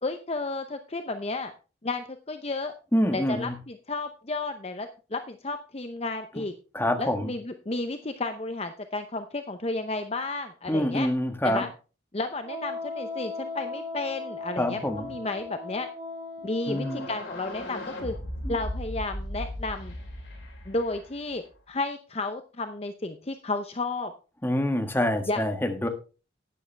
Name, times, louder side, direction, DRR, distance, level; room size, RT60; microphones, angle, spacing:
voice 1, 0.0-1.5 1.8-2.7 3.1-6.5 7.0-11.1 11.4-11.7 12.1-15.9 16.4-18.1 18.5-19.9 20.7-24.1 25.3-25.4, left 2 dB, 30° left, 7 dB, 0.7 m, -32 dB
voice 2, 2.9-3.5 6.7-7.3 10.7-11.6 14.6-15.1 16.7-17.1 18.4-18.6 24.4-25.9, left 1 dB, 10° left, 5 dB, 1.4 m, -26 dB
Wind instrument woodwind instrument, 12.4-17.2, left 3 dB, 40° right, 3.9 m, -37 dB
sound 1, 16.7-21.5, left 1 dB, 85° left, 4.9 m, -37 dB
12.5 x 9.8 x 3.3 m, 0.34 s
head